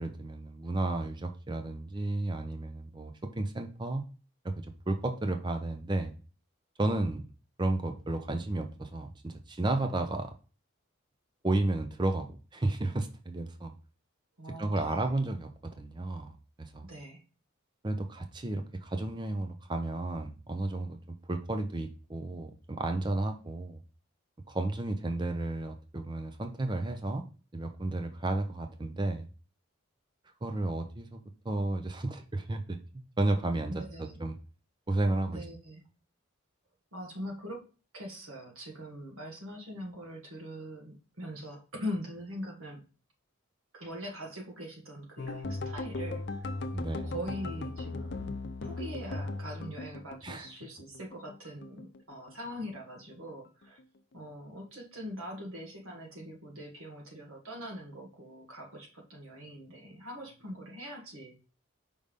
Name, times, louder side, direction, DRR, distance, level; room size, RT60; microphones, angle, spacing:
voice 1, 0.0-4.0 4.4-6.1 6.8-7.2 7.6-10.3 11.4-13.7 14.6-15.5 15.8-16.9 17.8-21.0 21.3-23.8 24.5-27.2 27.5-29.3 30.4-32.8 33.2-34.4 34.9-35.4 46.7-47.1 50.2-50.5, right 2 dB, 20° right, 6 dB, 0.6 m, -32 dB
voice 2, 14.4-15.2 16.8-17.2 33.7-34.2 35.3-35.8 36.9-37.7 37.9-42.8 43.7-46.5 47.0-48.3 48.6-53.8 54.1-61.4, equal, 85° right, 1 dB, 1.6 m, -42 dB
sound 1, 45.2-51.4 51.6-52.7 53.0-53.3 53.6-53.8, left 2 dB, 55° left, 0.5 m, -38 dB
5.3 x 3.5 x 5.2 m, 0.36 s
head